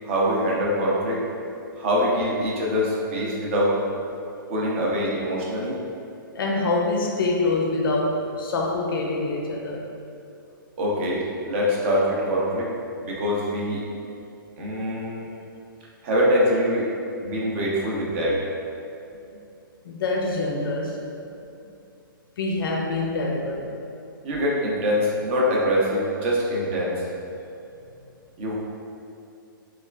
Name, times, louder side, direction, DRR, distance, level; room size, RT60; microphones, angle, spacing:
voice 1, 0.0-1.2 1.8-3.8 4.5-5.7 10.8-12.7 13.0-13.8 14.6-15.3 16.0-16.9 17.2-18.4 24.2-26.9 28.4-28.5, equal, 35° right, -4 dB, 0.5 m, -24 dB
voice 2, 6.3-9.9 19.8-21.0 22.4-23.7, left 2 dB, 75° left, 0 dB, 0.4 m, -25 dB
3.0 x 2.3 x 2.2 m, 2.6 s
hypercardioid pair, 155°, 12 cm